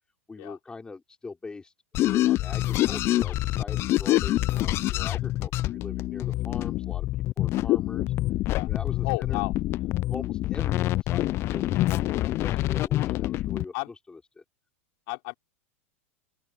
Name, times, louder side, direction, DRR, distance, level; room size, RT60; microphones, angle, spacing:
voice 1, 0.3-7.1 7.4-8.1 8.7-9.4 10.1-13.7 14.1-14.4, left 4 dB, 10° left, 4.1 m, -42 dB
sound 1, 1.9-13.6, left 16 dB, 35° left, 0.3 m, -26 dB
voice 2, 9.0-9.5 13.7-13.9 15.1-15.3, left 32 dB, 55° left, 5.4 m, -32 dB
open air
supercardioid pair, 135°, 8 cm